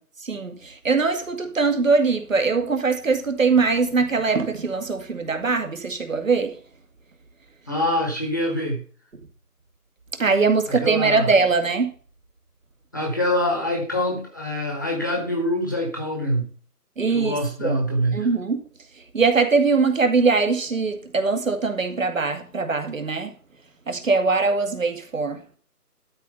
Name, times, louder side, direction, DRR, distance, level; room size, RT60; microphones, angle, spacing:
voice 1, 0.2-6.5 10.2-11.9 17.0-17.8 18.1-18.6 19.1-23.3 23.9-25.4, right 4 dB, 55° right, 2.1 m, -22 dB
voice 2, 7.7-8.8 10.7-11.3 12.9-16.5 17.1-18.3, equal, 10° left, 1.0 m, -25 dB
12.5 x 4.3 x 7.0 m
figure-of-eight pair, 160°, 47 cm